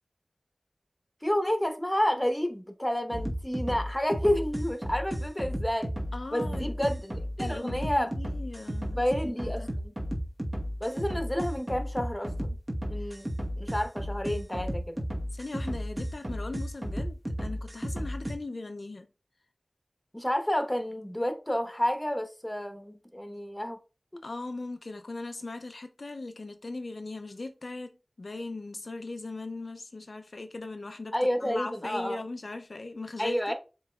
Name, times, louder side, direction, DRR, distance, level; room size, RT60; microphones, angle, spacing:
voice 1, 1.2-5.9 6.3-8.1 8.9-9.9 10.8-12.6 12.9-13.3 13.6-15.0 20.1-23.8 24.1-24.2 31.1-32.2 33.2-33.5, equal, 15° left, 0.9 m, -30 dB
sound 1, 3.1-18.3, equal, 35° right, 1.0 m, -33 dB
voice 2, 6.1-6.7 7.4-9.7 13.0-13.2 15.3-19.1 24.2-31.2 31.4-33.5, left 2 dB, 80° left, 0.4 m, -39 dB
7.4 x 3.0 x 2.3 m
wide cardioid pair, 45°, 0 cm